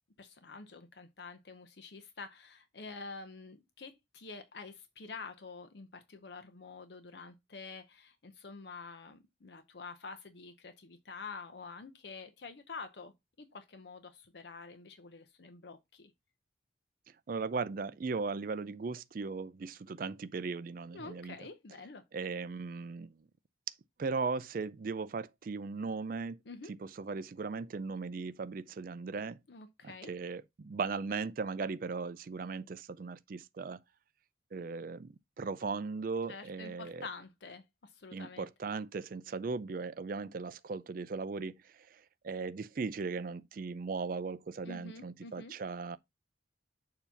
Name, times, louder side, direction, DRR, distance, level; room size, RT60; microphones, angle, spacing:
voice 1, 0.2-13.1 13.4-16.1 20.9-22.0 26.5-26.7 29.5-30.1 36.3-38.5 44.6-45.5, left 4 dB, 60° left, 0.7 m, -48 dB
voice 2, 17.3-21.3 22.1-23.2 24.0-26.4 26.7-29.4 29.8-33.8 34.5-37.0 38.1-46.0, right 4 dB, 45° right, 0.4 m, -38 dB
6.9 x 2.8 x 5.7 m
head